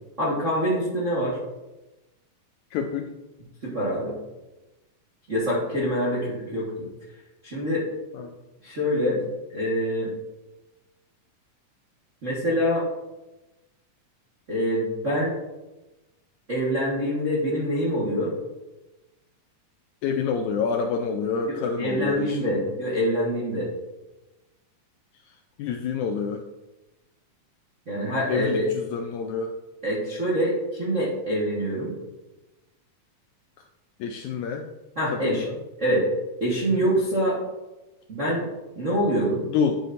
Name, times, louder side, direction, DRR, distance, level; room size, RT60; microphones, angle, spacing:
voice 1, 0.2-1.4 3.6-4.1 5.3-6.7 7.4-7.9 8.6-9.2 9.5-10.1 12.2-12.8 14.5-15.3 16.5-18.3 21.5-23.7 27.9-28.6 29.8-31.9 34.9-35.5 35.8-36.1 36.4-37.4 38.1-38.4 38.8-39.4, equal, 45° right, -6 dB, 0.9 m, -25 dB
voice 2, 2.7-3.1 8.1-8.3 20.0-22.7 25.6-26.4 28.3-29.5 34.0-34.6 35.1-35.5 39.5-39.8, left 6 dB, 80° left, 4 dB, 1.7 m, -27 dB
10.0 x 7.5 x 2.6 m, 1.1 s
omnidirectional pair, 3.9 m